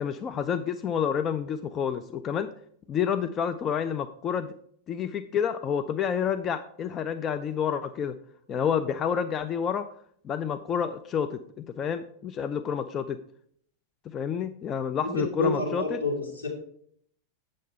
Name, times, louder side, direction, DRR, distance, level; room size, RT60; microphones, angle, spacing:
voice 1, 0.0-2.5 2.9-4.5 4.9-8.2 8.5-9.9 10.2-13.2 14.1-16.0, left 7 dB, 30° left, 9 dB, 0.4 m, -29 dB
voice 2, 15.0-16.5, left 2 dB, 75° left, -3 dB, 2.7 m, -29 dB
8.3 x 6.4 x 4.3 m, 0.64 s
figure-of-eight pair, 90°, 0 cm